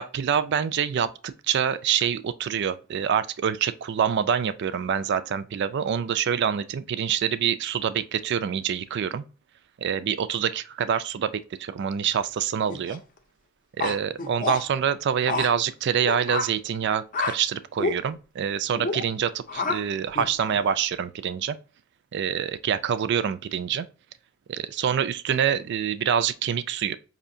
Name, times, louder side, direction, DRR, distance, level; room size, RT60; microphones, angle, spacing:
voice 1, 0.0-9.2 9.8-13.0 13.8-21.6 22.1-23.9 24.5-27.0, right 8 dB, 55° right, 0.3 m, -26 dB
sound 1, 12.7-13.0 13.8-14.6 15.3-15.5 16.1-16.5 17.1-17.4 17.8-18.0 18.7-19.0 19.5-19.8 20.2-20.7, left 3 dB, 40° left, 0.6 m, -28 dB
5.5 x 2.7 x 2.5 m
head